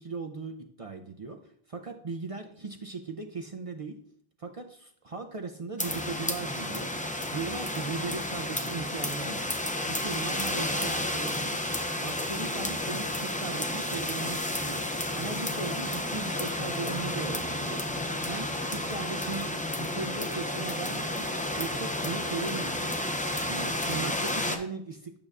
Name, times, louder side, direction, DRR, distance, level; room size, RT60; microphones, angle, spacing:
voice 1, 0.0-4.0 4.4-7.1 7.3-9.5 9.9-11.6 12.0-14.9 15.2-21.3 21.6-23.0 23.5-25.2, right 4 dB, 45° right, 5 dB, 0.5 m, -38 dB
sound 1, 5.8-24.6, left 1 dB, 10° left, 0.4 m, -31 dB
8.6 x 6.5 x 2.4 m, 0.64 s
omnidirectional pair, 1.0 m